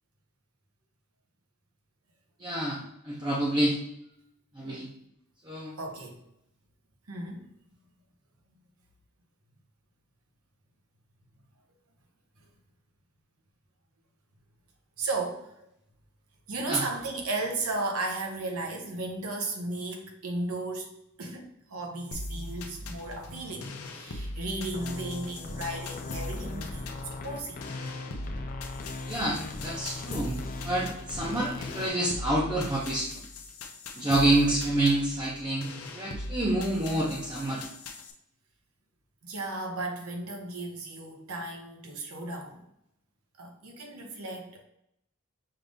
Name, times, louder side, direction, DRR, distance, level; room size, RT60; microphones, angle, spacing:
voice 1, 2.4-3.8 4.5-4.9 5.4-5.7 16.7-16.8 29.1-33.2 34.0-37.7, right 1 dB, 20° right, -4 dB, 0.6 m, -28 dB
voice 2, 5.8-6.2 7.1-7.4 15.0-15.5 16.5-20.9 21.2-27.6 39.2-42.6 43.4-44.6, right 2 dB, 85° right, 3 dB, 0.9 m, -35 dB
sound 1, 22.1-38.1, left 2 dB, 85° left, 0.6 m, -40 dB
sound 2, 24.6-31.9, left 3 dB, 40° left, 0.5 m, -39 dB
5.6 x 2.5 x 3.4 m, 0.78 s
head